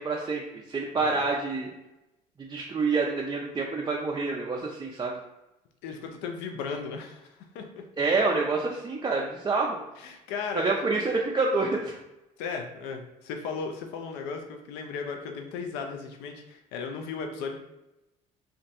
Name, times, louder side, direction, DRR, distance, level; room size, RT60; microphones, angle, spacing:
voice 1, 0.0-1.7 2.4-5.2 8.0-9.8 10.5-12.0, right 3 dB, 20° right, -2 dB, 0.4 m, -27 dB
voice 2, 5.8-7.9 10.0-10.7 12.4-17.6, left 5 dB, 75° left, 3 dB, 0.4 m, -36 dB
2.4 x 2.2 x 2.6 m, 0.95 s
hypercardioid pair, 65°, 18 cm